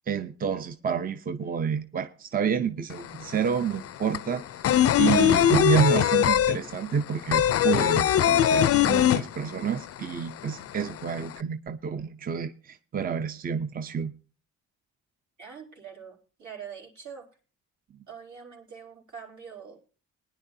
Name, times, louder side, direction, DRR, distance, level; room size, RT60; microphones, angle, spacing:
voice 1, 0.0-4.7 5.0-14.1, right 7 dB, 30° right, 0.6 m, -29 dB
sound 1, 2.9-3.0 3.3-9.8 10.1-10.2 10.5-11.3, left 10 dB, 50° left, 0.5 m, -21 dB
voice 2, 15.4-17.3 18.1-19.9, right 7 dB, 70° right, 4.1 m, -44 dB
20.5 x 10.0 x 2.7 m
cardioid pair, 90°, 30 cm